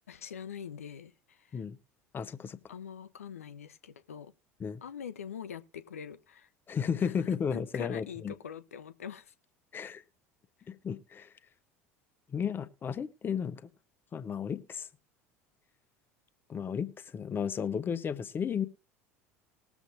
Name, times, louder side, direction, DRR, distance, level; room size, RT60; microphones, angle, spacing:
voice 1, 0.1-1.6 2.7-4.3 4.8-6.5 7.0-7.1 7.5-9.3, left 8 dB, 75° left, 0.6 m, -44 dB
voice 2, 2.1-2.6 4.6-4.8 6.7-8.3 9.7-10.0 10.7-11.3 12.3-13.7 14.1-14.9 16.5-18.7, left 7 dB, 25° left, 0.9 m, -33 dB
20.5 x 7.1 x 2.6 m
figure-of-eight pair, 70°, 8 cm